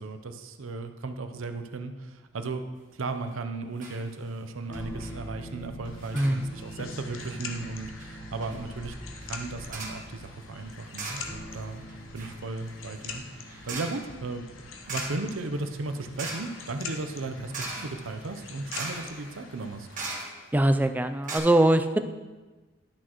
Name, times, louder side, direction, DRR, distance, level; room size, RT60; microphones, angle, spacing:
voice 1, 0.0-2.6 2.9-9.0 9.2-11.9 12.1-14.5 14.9-19.9, right 3 dB, 85° right, 8 dB, 0.7 m, -36 dB
sound 1, 3.1-3.5 3.8-4.0 4.3-4.4 4.7-5.1 6.0-6.4 7.1-7.5 8.0-8.1 8.4-8.6 9.7-10.1 10.9-11.6 11.9-20.6 21.0-21.1 21.2-21.4, right 3 dB, 40° right, 1.4 m, -40 dB
sound 2, 4.7-16.1, equal, 15° left, 0.8 m, -44 dB
sound 3, 5.8-20.1, left 4 dB, 85° left, 0.8 m, -44 dB
voice 2, 6.1-6.5 20.5-22.0, right 1 dB, 10° right, 8 dB, 0.3 m, -22 dB
11.5 x 6.3 x 3.0 m, 1.2 s
head